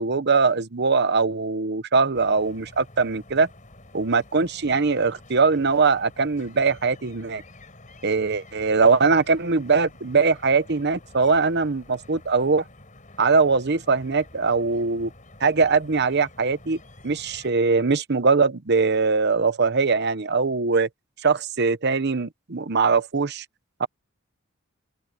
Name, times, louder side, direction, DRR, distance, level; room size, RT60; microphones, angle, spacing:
voice 1, 0.0-3.5 3.9-7.4 8.0-12.6 13.2-15.1 15.4-16.8 17.0-20.9 21.2-23.4 23.8-23.9, right 4 dB, 55° right, 1.0 m, -21 dB
sound 1, 2.1-17.5, left 2 dB, 40° left, 5.5 m, -49 dB
open air
head